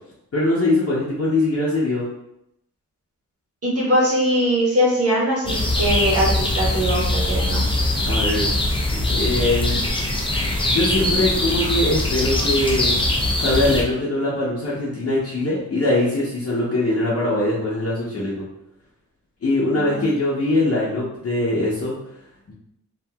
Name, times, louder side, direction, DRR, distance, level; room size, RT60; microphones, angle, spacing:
voice 1, 0.3-2.1 8.1-8.5 9.1-9.8 10.7-12.9 13.4-18.4 19.4-21.9 22.5-22.6, left 2 dB, 50° left, -7 dB, 0.8 m, -22 dB
voice 2, 3.6-7.6 19.7-20.1, equal, 50° right, -5 dB, 1.4 m, -21 dB
sound 1, 5.5-13.8, left 1 dB, 15° left, 0.5 m, -22 dB
2.8 x 2.5 x 3.5 m, 0.78 s
wide cardioid pair, 110°, 30 cm